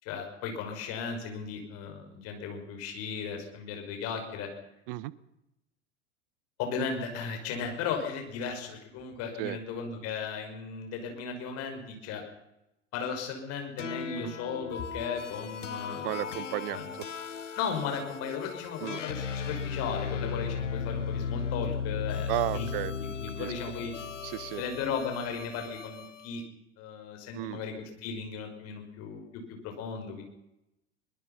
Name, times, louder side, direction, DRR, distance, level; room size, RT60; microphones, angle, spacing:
voice 1, 0.0-4.5 6.6-12.2 12.9-16.3 16.7-16.9 17.6-23.9 24.6-26.4 26.8-30.2, left 6 dB, 45° left, 4 dB, 5.9 m, -36 dB
sound 1, 13.8-26.3, left 6 dB, 85° left, 0.8 m, -36 dB
voice 2, 16.0-17.0 18.8-19.0 22.3-22.9 23.4-23.5 24.2-24.6 27.3-27.6, right 17 dB, 50° right, 19 dB, 1.2 m, -33 dB
23.0 x 20.5 x 5.7 m, 0.87 s
figure-of-eight pair, 85°, 36 cm